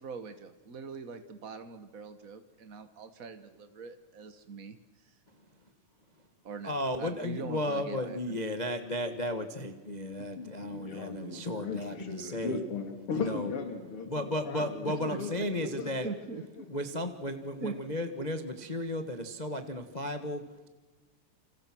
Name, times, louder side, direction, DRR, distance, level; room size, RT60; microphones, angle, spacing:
voice 1, 0.0-4.8 5.0-5.1 6.4-8.4 14.8-15.2 16.0-16.7 17.6-17.8, right 5 dB, 60° right, 9 dB, 0.8 m, -42 dB
voice 2, 6.6-12.6 13.1-13.5 14.1-16.1 16.7-20.7, left 1 dB, 75° left, 7 dB, 0.4 m, -34 dB
voice 3, 10.2-16.3 16.5-16.7, left 4 dB, 45° left, 6 dB, 3.8 m, -38 dB
29.5 x 26.5 x 6.2 m, 1.2 s
omnidirectional pair, 3.5 m